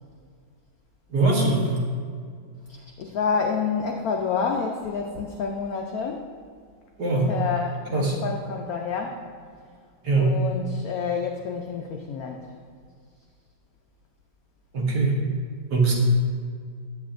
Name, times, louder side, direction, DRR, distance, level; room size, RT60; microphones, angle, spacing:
voice 1, 1.1-1.7 7.0-7.3 7.9-8.2 10.0-10.3 14.7-15.2 15.7-15.9, right 3 dB, 60° right, -2 dB, 1.7 m, -21 dB
voice 2, 2.7-6.3 7.3-9.2 10.2-12.6, left 5 dB, 90° left, 2 dB, 0.7 m, -29 dB
8.7 x 8.3 x 2.5 m, 2.1 s
omnidirectional pair, 2.2 m